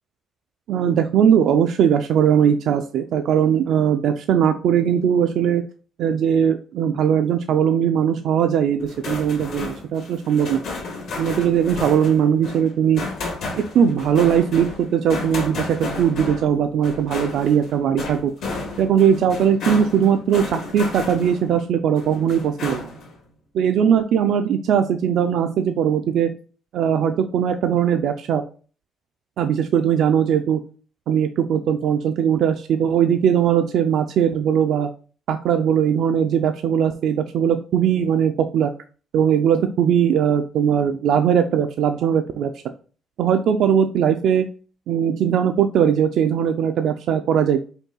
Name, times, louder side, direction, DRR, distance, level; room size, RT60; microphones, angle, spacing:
voice 1, 0.7-5.6 6.0-10.6 11.2-13.0 13.5-18.3 18.8-22.9 23.5-26.3 26.7-28.4 29.4-30.6 31.1-34.9 35.3-38.7 39.1-42.5 43.2-44.4 44.9-47.6, right 8 dB, 70° right, 6 dB, 0.3 m, -19 dB
sound 1, 8.8-21.6 22.0-23.1, left 3 dB, 80° left, 1.7 m, -32 dB
5.3 x 2.3 x 3.8 m, 0.38 s
cardioid pair, 90°, 0 cm